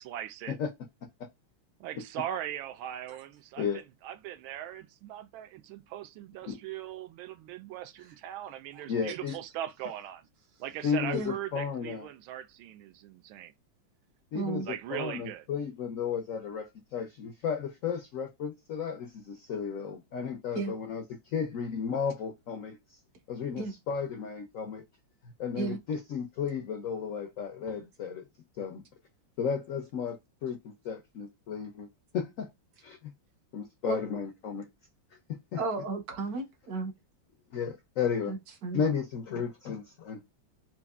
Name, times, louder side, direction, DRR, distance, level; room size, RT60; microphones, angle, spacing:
voice 1, 0.0-0.6 1.8-10.3 10.6-13.5 14.6-15.4, right 12 dB, 90° right, 1.4 m, -40 dB
voice 2, 8.9-9.3 10.8-12.1 14.3-14.6 14.9-23.0 23.3-24.8 25.4-28.2 28.6-28.8 29.4-31.9 32.1-32.5 32.8-33.0 33.5-34.7 35.5-35.6 37.5-38.3 38.7-40.2, left 6 dB, 80° left, 0.7 m, -33 dB
voice 3, 14.3-14.7 20.5-20.7 23.6-23.7 25.5-25.8 33.8-34.0 35.6-36.9 38.3-38.8, right 3 dB, 65° right, 1.0 m, -34 dB
4.5 x 2.5 x 2.3 m
omnidirectional pair, 2.2 m